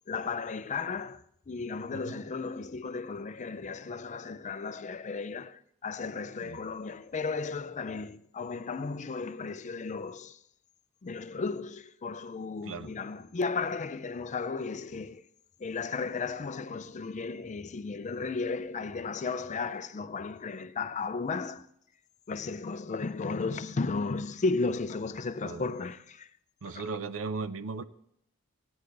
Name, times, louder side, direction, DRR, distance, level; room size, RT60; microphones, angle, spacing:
voice 1, 0.1-1.2 1.5-10.4 11.0-15.2 15.6-21.7 22.3-26.3 26.7-26.8, left 4 dB, 35° left, 0.5 m, -34 dB
voice 2, 26.6-27.8, right 4 dB, 60° right, 0.5 m, -37 dB
16.0 x 9.7 x 3.9 m
head